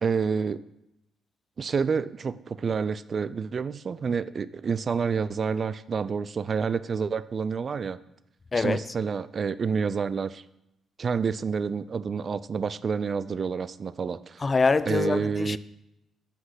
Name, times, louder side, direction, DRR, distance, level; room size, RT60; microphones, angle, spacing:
voice 1, 0.0-0.6 1.6-8.0 8.5-10.4 11.0-14.4 14.9-15.6, right 5 dB, 45° right, 0.3 m, -28 dB
voice 2, 8.5-8.8 14.4-15.6, left 4 dB, 30° left, 0.3 m, -24 dB
8.0 x 5.9 x 5.7 m
cardioid pair, 90°, 0 cm